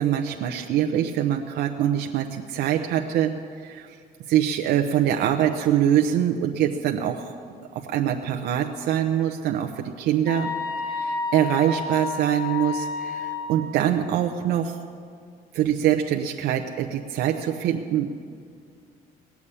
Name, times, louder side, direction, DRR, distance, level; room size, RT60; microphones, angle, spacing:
voice 1, 0.0-3.3 3.6-4.0 4.3-7.3 7.7-10.5 10.8-14.8 15.5-18.1, right 10 dB, 80° right, 3 dB, 0.8 m, -24 dB
sound 1, 10.3-13.5, left 4 dB, 35° left, 3.9 m, -30 dB
19.5 x 7.2 x 9.8 m, 2.2 s
cardioid pair, 110°, 17 cm